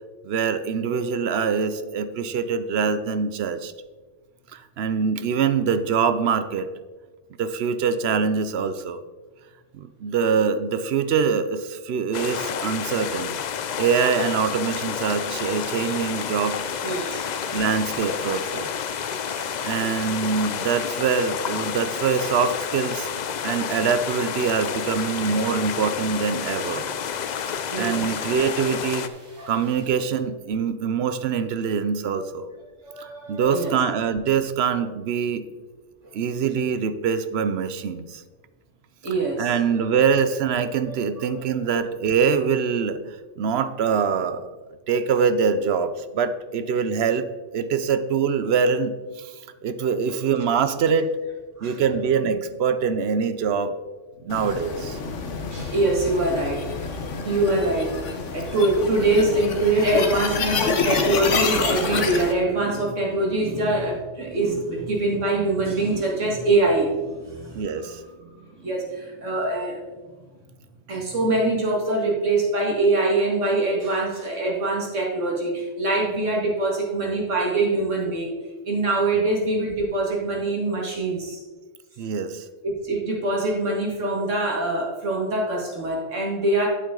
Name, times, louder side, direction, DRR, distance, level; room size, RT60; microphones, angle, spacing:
voice 1, 0.2-3.7 4.5-6.7 7.4-9.0 9.7-13.4 13.8-16.6 17.5-18.7 19.6-23.1 23.4-26.9 27.4-29.1 29.5-32.5 33.3-35.5 36.1-38.2 39.4-43.0 43.4-44.5 44.9-47.3 47.5-49.3 49.6-51.1 51.6-53.7 54.3-55.0 67.5-68.0 82.0-82.4, right 6 dB, 65° right, 12 dB, 0.8 m, -24 dB
sound 1, 12.1-29.1, left 8 dB, 65° left, 0.4 m, -30 dB
sound 2, 14.9-29.9, equal, 35° right, 3.0 m, -46 dB
voice 2, 16.8-17.2 25.2-25.3 27.7-28.0 29.4-29.5 32.2-32.3 32.8-33.8 36.0-36.1 39.0-39.9 40.9-41.3 51.6-51.8 52.2-52.3 54.2-54.4 55.5-56.8 57.2-57.9 58.3-67.9 68.2-69.8 70.9-78.3 78.7-81.4 82.6-86.7, right 2 dB, 90° right, -1 dB, 2.3 m, -24 dB
sound 3, 54.3-62.3, left 4 dB, 80° left, 1.3 m, -27 dB
9.0 x 8.2 x 3.8 m, 1.3 s
omnidirectional pair, 1.2 m